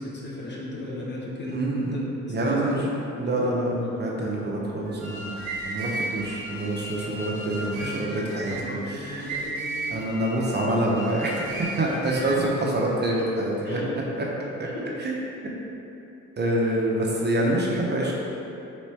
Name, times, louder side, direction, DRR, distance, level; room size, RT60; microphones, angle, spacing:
voice 1, 0.0-2.9 3.3-3.5 7.7-10.0 12.4-12.5 13.6-13.8 14.6-14.8 15.6-15.7, left 1 dB, 35° left, -5 dB, 1.0 m, -36 dB
voice 2, 1.5-2.0 2.3-2.8 3.2-5.4 5.7-9.3 9.9-13.8 14.3-14.4 15.0-15.1 16.4-18.1, right 1 dB, 35° right, -3 dB, 0.7 m, -26 dB
sound 1, 4.8-12.5, right 2 dB, 65° right, 1.4 m, -35 dB
3.4 x 3.0 x 4.4 m, 2.9 s
cardioid pair, 90°, 30 cm